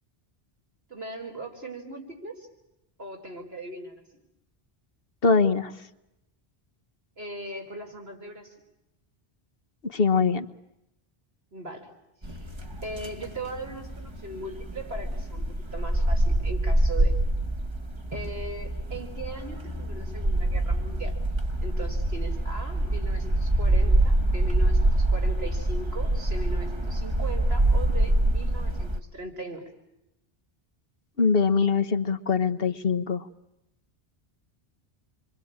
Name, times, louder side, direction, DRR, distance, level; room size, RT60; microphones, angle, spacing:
voice 1, 0.9-2.5 3.0-4.0 7.2-8.5 11.5-11.9 12.2-12.5 12.8-17.1 18.1-21.2 21.6-29.7, right 2 dB, 75° right, 2 dB, 5.0 m, -39 dB
voice 2, 5.2-5.7 9.9-10.5 31.2-33.3, left 5 dB, 65° left, 10 dB, 1.4 m, -22 dB
sound 1, 12.2-29.0, right 1 dB, 25° right, 1.5 m, -25 dB
28.0 x 24.0 x 8.8 m, 0.87 s
omnidirectional pair, 1.0 m